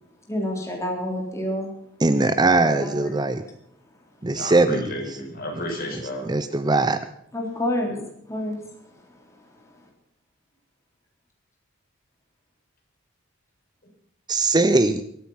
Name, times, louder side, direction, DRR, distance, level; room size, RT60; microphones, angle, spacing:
voice 1, 0.3-1.7 2.6-3.2 4.3-4.4 7.3-8.0 8.3-8.6, left 1 dB, 15° left, 0 dB, 3.7 m, -28 dB
voice 2, 2.0-3.4 4.2-4.9 6.2-7.0 14.3-15.0, right 2 dB, 20° right, 10 dB, 0.6 m, -20 dB
voice 3, 4.3-6.3 7.8-7.9, left 1 dB, 45° left, 0 dB, 5.5 m, -32 dB
23.0 x 8.9 x 5.6 m, 0.72 s
head